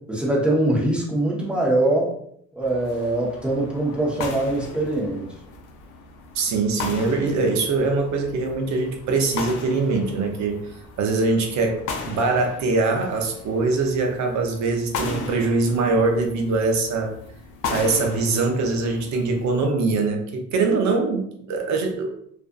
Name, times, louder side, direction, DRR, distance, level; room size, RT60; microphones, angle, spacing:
voice 1, 0.1-2.1 2.5-5.3, right 1 dB, 5° right, -4 dB, 0.8 m, -22 dB
sound 1, 2.6-19.6, left 4 dB, 80° left, 0.5 m, -37 dB
voice 2, 6.3-10.7 11.0-11.8 12.1-17.1 17.7-22.1, right 3 dB, 65° right, 4 dB, 0.6 m, -23 dB
2.4 x 2.4 x 2.2 m, 0.68 s
cardioid pair, 90°, 30 cm